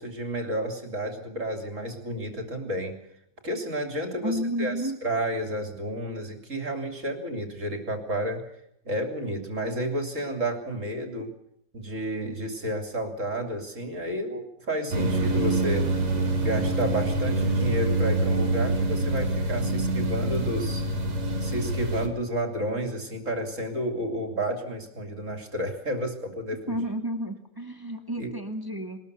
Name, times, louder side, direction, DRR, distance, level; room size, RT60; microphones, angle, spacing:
voice 1, 0.0-3.0 3.4-8.4 8.8-11.3 11.7-15.9 16.4-20.8 21.4-26.8 28.2-28.3, right 1 dB, 35° right, 5 dB, 3.5 m, -31 dB
voice 2, 4.2-5.0 26.7-29.0, equal, 10° right, 5 dB, 2.0 m, -31 dB
sound 1, 14.9-22.1, right 2 dB, 80° right, 3.5 m, -25 dB
22.0 x 20.5 x 6.9 m, 0.77 s
omnidirectional pair, 2.4 m